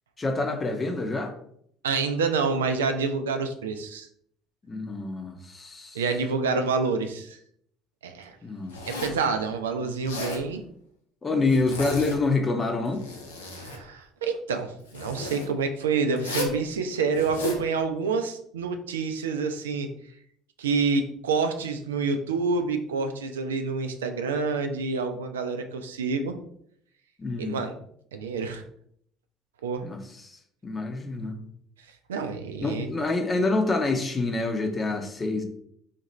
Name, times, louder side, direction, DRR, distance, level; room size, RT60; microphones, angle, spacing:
voice 1, 0.2-1.3 4.7-6.0 8.4-9.0 11.2-13.0 27.2-27.6 29.8-30.0 30.2-31.4 32.6-35.4, left 3 dB, 25° left, 5 dB, 0.8 m, -27 dB
voice 2, 1.8-4.1 5.9-7.4 8.0-8.4 8.9-10.6 13.6-19.9 20.6-26.4 27.4-27.8 28.1-28.6 29.6-29.9 32.1-32.9, right 4 dB, 85° right, 7 dB, 0.4 m, -28 dB
Zipper (clothing), 8.7-9.3 9.9-10.4 11.5-12.2 12.8-13.8 14.9-15.5 16.2-16.6 17.1-17.6, left 1 dB, 85° left, 0.6 m, -34 dB
4.2 x 2.4 x 3.1 m, 0.67 s
hypercardioid pair, 65°, 0 cm